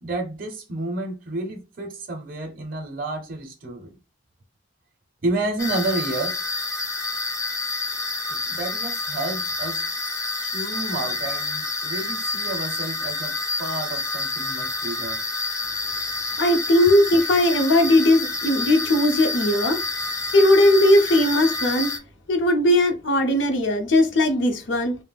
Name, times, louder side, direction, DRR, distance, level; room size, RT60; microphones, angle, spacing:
voice 1, 0.0-4.0 5.2-6.4 8.3-15.2 16.3-16.4, right 2 dB, 45° right, 0.5 m, -31 dB
sound 1, 5.6-22.0, left 3 dB, 15° left, 0.3 m, -28 dB
voice 2, 16.4-19.8 20.3-21.9 22.3-25.0, left 1 dB, 65° left, 0.6 m, -18 dB
2.2 x 2.0 x 3.3 m
head